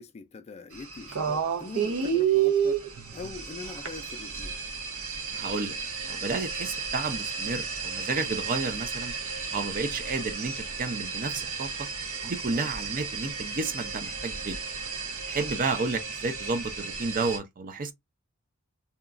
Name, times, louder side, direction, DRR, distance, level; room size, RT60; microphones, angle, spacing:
voice 1, 0.0-4.6 12.5-12.7, left 4 dB, 30° left, 0.3 m, -43 dB
sound 1, 0.7-17.4, right 6 dB, 75° right, 0.7 m, -32 dB
voice 2, 5.3-5.8 6.1-9.1 9.5-11.9 12.2-14.6 15.3-17.9, right 3 dB, 40° right, 0.5 m, -31 dB
2.9 x 2.2 x 2.4 m
head